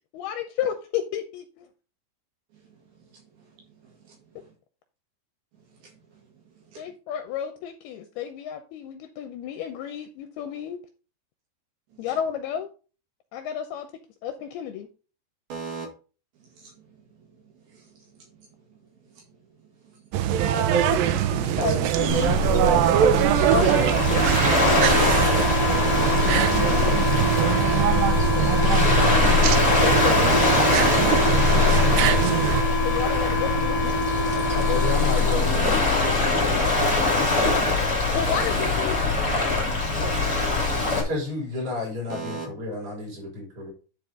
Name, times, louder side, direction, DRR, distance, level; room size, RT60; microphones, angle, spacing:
voice 1, 0.1-1.7 6.8-10.8 12.0-12.7 13.3-13.9 14.2-14.9 20.6-22.4 23.5-24.3 28.3-28.6 29.6-30.4 32.8-33.9 37.3-37.4 38.2-39.6, left 9 dB, 75° left, 7 dB, 2.4 m, -32 dB
voice 2, 15.5-15.9 16.6-16.7 22.7-23.1 25.7-26.1 30.2-30.6 35.4-35.8 42.1-42.5, right 5 dB, 65° right, 0 dB, 3.5 m, -33 dB
sound 1, 20.1-32.6, right 10 dB, 85° right, 2.0 m, -23 dB
Waves surf, 22.1-41.0, left 3 dB, 15° left, 0.9 m, -23 dB
sound 2, 23.5-35.5, left 1 dB, 50° left, 1.3 m, -27 dB
voice 3, 34.6-36.3 41.0-43.7, left 3 dB, 40° right, -4 dB, 6.4 m, -31 dB
11.0 x 4.7 x 3.7 m, 0.34 s
omnidirectional pair, 5.0 m